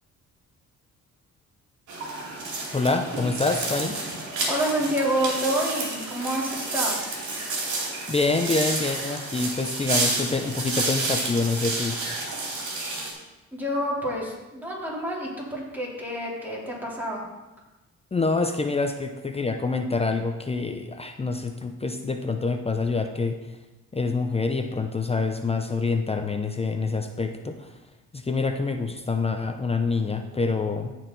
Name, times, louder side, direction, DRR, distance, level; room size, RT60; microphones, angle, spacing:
sound 1, 1.9-13.1, right 2 dB, 70° right, 2.5 m, -30 dB
voice 1, 2.7-4.0 8.1-12.0 18.1-23.4 23.9-27.7 28.1-31.0, left 3 dB, 20° left, 6 dB, 0.6 m, -26 dB
voice 2, 4.5-7.0 13.5-17.2, right 1 dB, 5° right, -5 dB, 3.4 m, -28 dB
14.0 x 4.6 x 4.0 m, 1.1 s
cardioid pair, 90°, 30 cm